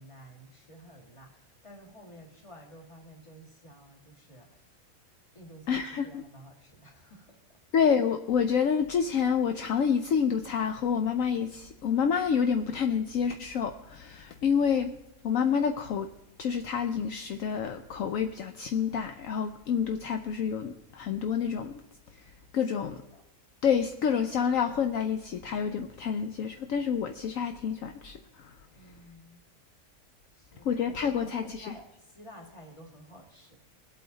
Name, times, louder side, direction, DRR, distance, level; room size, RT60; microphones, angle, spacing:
voice 1, 0.0-4.8 5.3-7.4 22.7-23.2 28.7-29.5 30.3-33.6, equal, 20° left, 1 dB, 2.0 m, -52 dB
voice 2, 5.7-6.2 7.7-14.9 15.2-16.1 16.4-21.7 22.1-22.2 22.5-23.0 23.6-28.5 30.6-31.7, left 7 dB, 70° left, 7 dB, 1.0 m, -28 dB
20.5 x 8.5 x 4.0 m, 0.88 s
omnidirectional pair, 1.5 m